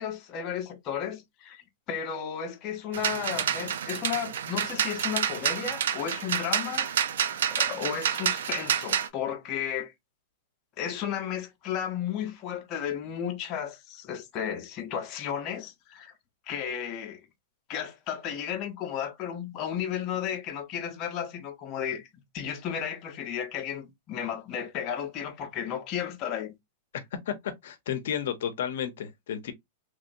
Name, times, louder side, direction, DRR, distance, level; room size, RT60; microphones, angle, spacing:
voice 1, 0.0-1.6 1.9-6.9 7.5-9.9 10.8-16.1 16.5-17.2 17.7-22.1 22.3-26.6, left 8 dB, 30° left, 0.7 m, -33 dB
sound 1, 2.9-9.1, right 8 dB, 80° right, 0.5 m, -29 dB
voice 2, 27.3-29.5, left 9 dB, 70° left, 0.6 m, -32 dB
3.0 x 2.7 x 2.5 m
supercardioid pair, 160°, 0 cm